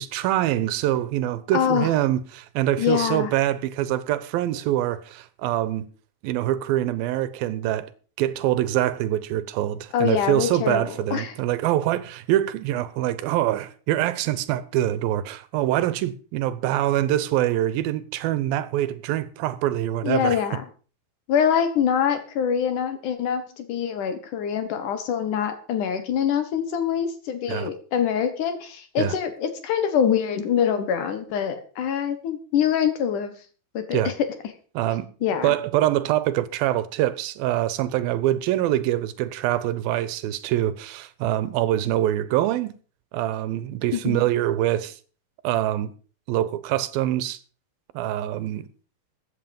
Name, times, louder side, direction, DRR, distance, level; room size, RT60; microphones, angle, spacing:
voice 1, 0.0-5.9 6.2-7.9 8.2-20.4 27.5-27.7 29.0-29.1 33.9-34.1 34.7-35.1 35.4-42.7 43.1-45.0 45.4-45.9 46.3-47.4 47.9-48.7, right 13 dB, 85° right, 2.7 m, -24 dB
voice 2, 1.5-1.9 2.8-3.3 9.9-11.3 20.0-20.6 21.3-33.4 33.7-34.3 35.2-35.5 43.9-44.2, left 8 dB, 65° left, 2.7 m, -24 dB
15.0 x 8.6 x 5.2 m
omnidirectional pair, 4.1 m